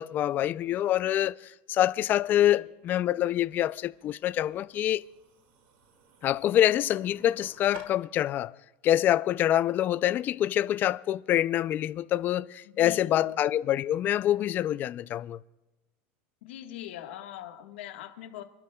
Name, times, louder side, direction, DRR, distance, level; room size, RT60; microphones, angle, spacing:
voice 1, 0.0-5.0 6.2-8.5 8.8-15.4, left 12 dB, 30° left, 0.3 m, -26 dB
sound 1, 2.6-7.8, right 5 dB, 60° right, 2.0 m, -54 dB
voice 2, 12.6-13.4 16.4-18.4, left 12 dB, 90° left, 1.4 m, -42 dB
28.5 x 12.0 x 2.3 m
supercardioid pair, 150°, 6 cm